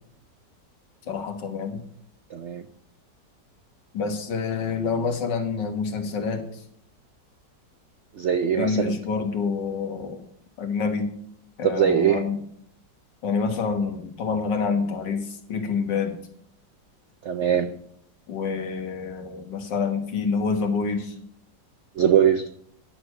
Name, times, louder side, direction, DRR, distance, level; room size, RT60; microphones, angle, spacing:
voice 1, 1.1-1.8 3.9-6.5 8.5-10.2 10.6-11.1 11.6-12.4 13.2-16.2 18.3-21.2, left 5 dB, 75° left, 5 dB, 2.0 m, -27 dB
voice 2, 2.3-2.6 8.2-9.0 11.6-12.2 17.2-17.7 22.0-22.4, right 8 dB, 75° right, 9 dB, 0.6 m, -21 dB
10.5 x 6.6 x 6.1 m, 0.66 s
omnidirectional pair, 1.9 m